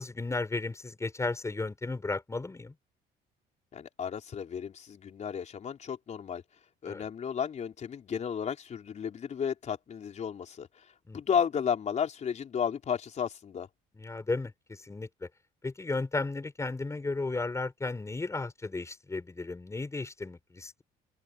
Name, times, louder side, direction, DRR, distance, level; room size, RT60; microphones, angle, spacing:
voice 1, 0.0-2.7 6.9-7.0 11.1-11.2 13.9-15.3 15.6-20.8, left 3 dB, 15° left, 7.1 m, -34 dB
voice 2, 3.7-6.4 6.8-10.7 11.1-13.7, left 7 dB, 45° left, 4.2 m, -33 dB
open air
cardioid pair, 110°, 17 cm